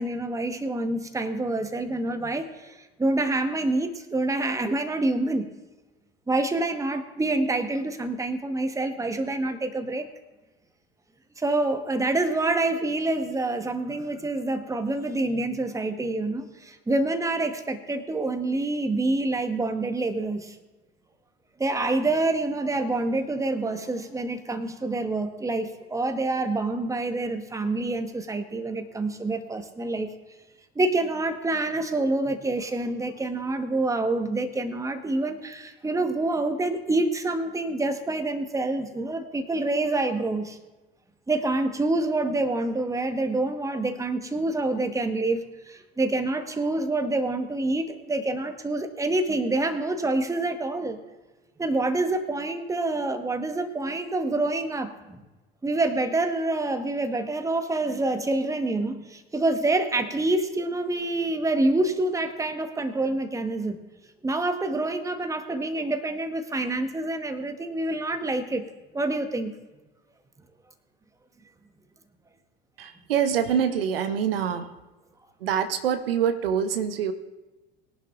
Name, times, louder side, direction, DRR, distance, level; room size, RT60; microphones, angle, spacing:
voice 1, 0.0-5.5 6.3-10.1 11.4-20.6 21.6-30.1 30.7-40.6 41.3-51.0 51.6-55.2 55.6-63.8 64.2-68.7 68.9-69.5, right 2 dB, 10° right, 7 dB, 1.3 m, -27 dB
voice 2, 72.8-74.7 75.4-77.1, right 8 dB, 65° right, 9 dB, 1.0 m, -25 dB
21.5 x 11.0 x 2.5 m, 1.1 s
figure-of-eight pair, 70°, 31 cm